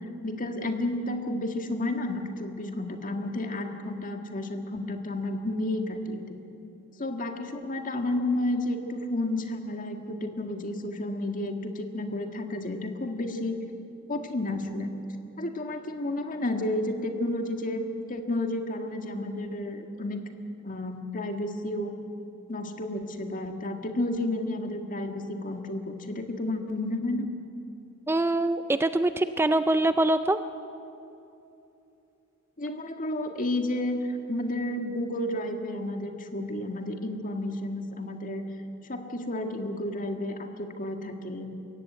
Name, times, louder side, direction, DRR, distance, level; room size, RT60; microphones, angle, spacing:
voice 1, 0.2-6.4 7.0-13.6 14.1-14.9 15.4-20.2 20.6-21.9 22.5-27.3 32.6-38.4 38.9-41.5, left 1 dB, 40° left, 5 dB, 1.8 m, -31 dB
voice 2, 28.1-30.4, right 2 dB, 10° right, 11 dB, 0.4 m, -24 dB
22.0 x 16.5 x 9.2 m, 2.8 s
head